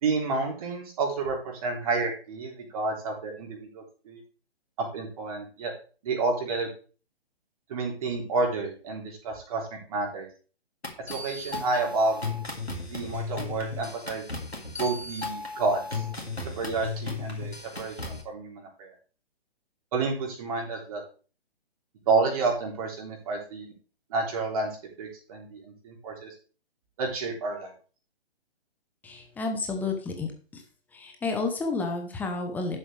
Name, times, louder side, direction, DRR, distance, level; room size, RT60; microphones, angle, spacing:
voice 1, 0.0-4.2 4.8-5.7 6.0-6.7 7.7-10.3 11.1-12.2 12.9-14.2 14.7-16.1 16.6-18.9 19.9-21.0 22.1-23.7 24.1-24.7 25.0-26.3 27.0-27.7, right 3 dB, 35° right, 1 dB, 3.4 m, -30 dB
sound 1, 10.8-18.2, left 3 dB, 90° left, 2.7 m, -35 dB
voice 2, 29.0-30.6 30.9-32.8, left 3 dB, 5° left, 3 dB, 0.9 m, -31 dB
12.0 x 7.5 x 3.3 m, 0.37 s
figure-of-eight pair, 130°, 31 cm